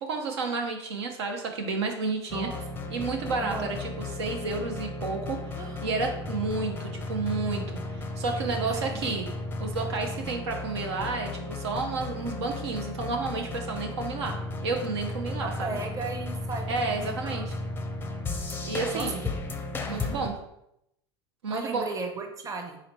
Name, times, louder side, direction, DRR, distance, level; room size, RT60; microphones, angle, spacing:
voice 1, 0.0-2.5 2.9-9.3 9.6-14.4 14.6-15.8 16.7-17.6 18.6-19.2 19.9-20.3 21.4-21.8, right 4 dB, 75° right, 3 dB, 0.7 m, -31 dB
sound 1, 2.3-20.3, left 2 dB, 15° left, 0.5 m, -35 dB
voice 2, 3.4-3.7 5.6-6.1 8.6-9.1 15.4-17.4 18.9-19.1 19.5-19.6 19.9-20.2 21.5-22.8, right 3 dB, 25° right, 3 dB, 0.8 m, -37 dB
4.1 x 3.9 x 3.2 m, 0.80 s
hypercardioid pair, 80°, 14 cm